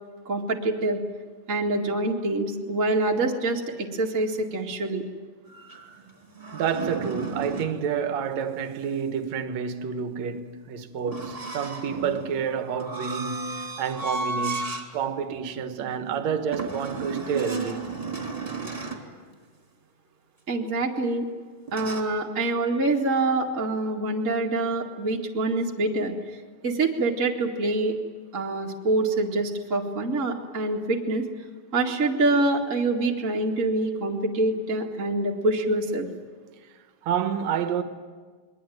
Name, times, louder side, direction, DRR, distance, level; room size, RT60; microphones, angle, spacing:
voice 1, 0.3-1.0 1.5-5.0 20.5-21.3 21.7-26.1 26.6-27.9 28.3-31.2 31.7-36.1, right 2 dB, 25° right, 1.9 m, -25 dB
sound 1, 5.5-7.8 11.1-14.9 15.3-15.5 16.5-19.1 21.7-22.0, right 4 dB, 10° right, 2.8 m, -34 dB
voice 2, 6.5-17.8 37.1-37.8, right 7 dB, 60° right, 2.4 m, -29 dB
28.0 x 22.0 x 9.4 m
omnidirectional pair, 4.0 m